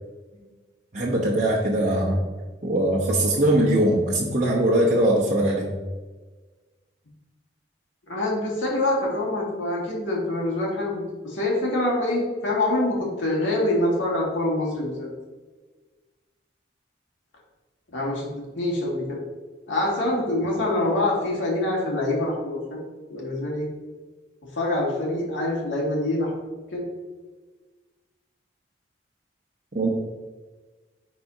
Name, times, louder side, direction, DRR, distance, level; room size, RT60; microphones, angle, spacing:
voice 1, 0.9-2.2 2.6-5.7 29.7-29.9, right 1 dB, 40° right, -5 dB, 0.9 m, -21 dB
voice 2, 8.1-15.1 17.9-19.2 19.7-22.8 23.1-23.7 24.5-26.3 26.7-26.8, left 1 dB, 85° left, -3 dB, 2.1 m, -25 dB
10.5 x 4.2 x 2.7 m, 1.3 s
head